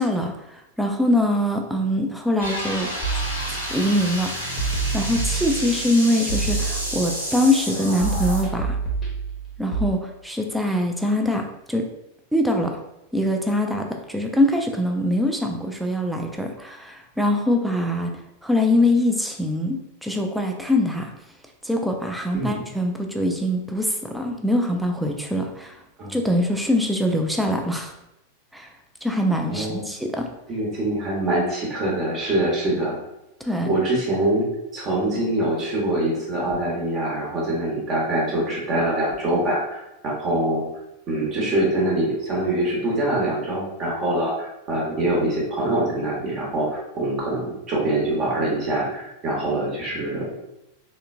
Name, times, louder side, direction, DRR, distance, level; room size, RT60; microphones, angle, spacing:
voice 1, 0.0-8.8 9.6-11.9 12.3-12.8 13.1-18.1 18.4-21.1 21.6-25.8 26.1-27.9 28.5-28.7 29.0-30.3 33.4-33.7, left 1 dB, ahead, 3 dB, 0.4 m, -23 dB
sound 1, 2.4-8.4, equal, 80° right, 0.8 m, -30 dB
sound 2, 3.0-3.9 4.6-5.9 6.3-7.4 8.0-9.9, right 4 dB, 20° left, 0.8 m, -27 dB
voice 2, 29.5-29.8 30.5-33.0 33.6-34.5 34.7-40.6 41.1-50.3, right 1 dB, 30° right, -3 dB, 1.0 m, -24 dB
3.6 x 2.2 x 2.4 m, 0.88 s
figure-of-eight pair, 90°, 0 cm